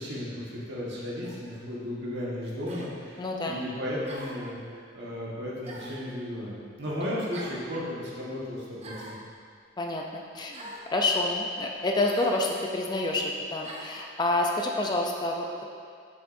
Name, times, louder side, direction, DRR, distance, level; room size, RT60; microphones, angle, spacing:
voice 1, 0.0-9.2, left 1 dB, 60° right, -6 dB, 1.5 m, -35 dB
sound 1, 1.2-1.5 2.7-2.9 4.1-4.5 5.6-6.1 7.3-7.6 8.8-9.2 10.5-10.9 12.1-12.4 13.6-13.9, right 1 dB, 35° right, 0.7 m, -43 dB
voice 2, 3.2-3.6 9.8-10.6 10.9-15.6, left 2 dB, 25° left, 1 dB, 0.4 m, -28 dB
7.0 x 6.0 x 2.6 m, 2.2 s
head